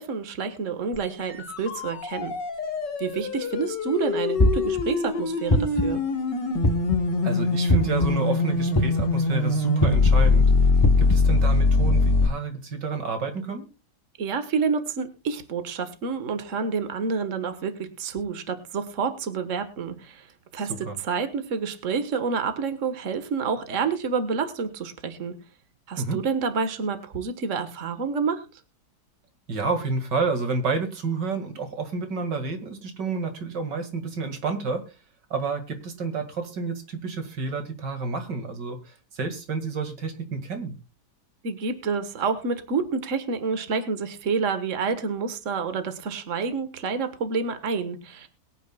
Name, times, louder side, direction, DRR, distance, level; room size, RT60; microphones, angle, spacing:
voice 1, 0.0-2.3 3.0-6.0 14.2-20.3 20.5-25.4 25.9-28.5 41.4-48.3, right 5 dB, 50° right, 10 dB, 1.8 m, -28 dB
sound 1, 0.9-12.3, left 3 dB, 85° left, 2.4 m, -23 dB
sound 2, 4.4-4.8 5.5-6.0 6.6-7.1 7.7-8.1 8.7-9.2 9.8-10.1 10.8-11.2, left 1 dB, 25° left, 0.5 m, -21 dB
voice 2, 7.2-10.5 11.0-13.7 20.7-21.0 26.0-26.2 29.5-34.9 35.3-40.7, right 4 dB, 90° right, 7 dB, 2.7 m, -29 dB
22.0 x 9.3 x 2.3 m, 0.29 s
omnidirectional pair, 1.8 m